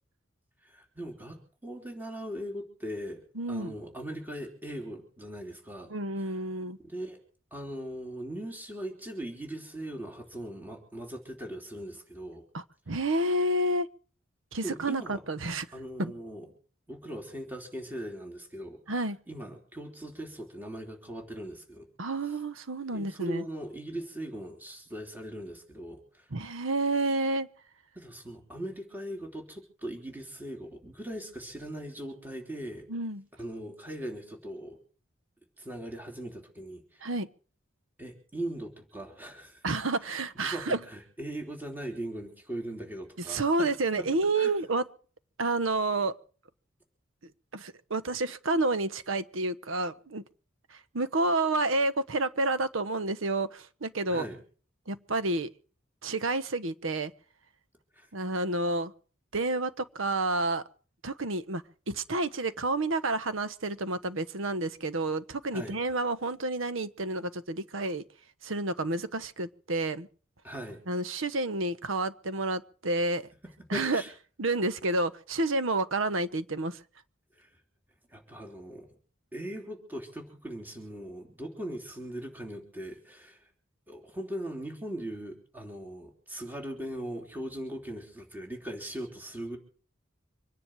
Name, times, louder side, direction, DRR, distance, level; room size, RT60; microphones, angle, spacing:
voice 1, 0.6-3.2 3.5-5.9 6.2-6.3 6.8-7.2 7.5-12.4 14.6-15.2 15.7-16.5 16.9-18.9 19.3-21.9 22.9-26.3 27.9-32.9 33.4-34.8 35.6-37.0 38.0-39.6 40.3-43.7 44.0-44.1 44.4-44.5 54.1-54.4 57.9-58.1 65.5-65.8 70.4-70.8 73.4-74.1 77.3-77.5 78.1-78.9 79.3-83.5 83.9-89.6, right 1 dB, 10° right, 3.3 m, -40 dB
voice 2, 3.4-3.7 5.9-6.8 12.5-13.9 14.5-15.7 16.0-16.1 18.9-19.2 22.0-23.4 26.3-27.5 32.9-33.2 37.0-37.3 39.6-40.8 43.3-44.8 45.4-46.1 47.5-50.2 50.9-54.3 54.9-55.5 56.0-57.1 58.1-58.9 59.3-60.6 61.0-68.0 68.4-70.1 70.9-73.3 73.7-74.0 74.4-76.8, right 2 dB, 75° right, 1.1 m, -29 dB
25.5 x 10.5 x 4.8 m
head